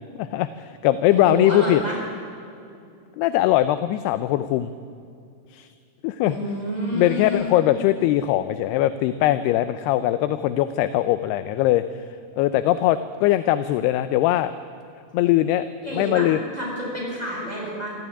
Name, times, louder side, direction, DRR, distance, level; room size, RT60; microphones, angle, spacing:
voice 1, 0.2-1.8 3.2-4.7 5.5-5.7 6.0-6.4 6.9-12.0 12.3-14.5 15.1-15.7 15.9-16.4, left 14 dB, 80° left, 12 dB, 2.6 m, -21 dB
voice 2, 1.1-2.0 6.2-7.6 15.8-16.3 16.5-17.9, equal, 10° left, -3 dB, 6.5 m, -29 dB
24.5 x 14.5 x 9.8 m, 2.5 s
omnidirectional pair, 4.9 m